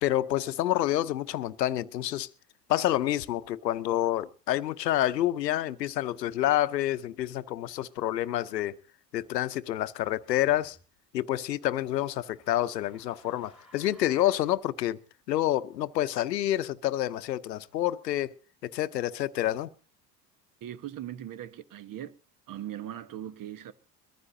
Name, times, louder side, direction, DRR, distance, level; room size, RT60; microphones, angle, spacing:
voice 1, 0.0-2.3 2.7-8.8 9.1-10.8 11.1-15.0 15.3-18.3 18.6-19.7, left 13 dB, 85° left, 0.8 m, -28 dB
sound 1, 10.5-10.8 11.8-14.6, equal, ahead, 4.5 m, -58 dB
voice 2, 20.6-22.1 22.5-23.7, right 11 dB, 45° right, 1.2 m, -39 dB
22.5 x 14.5 x 2.7 m
hypercardioid pair, 70°, 48 cm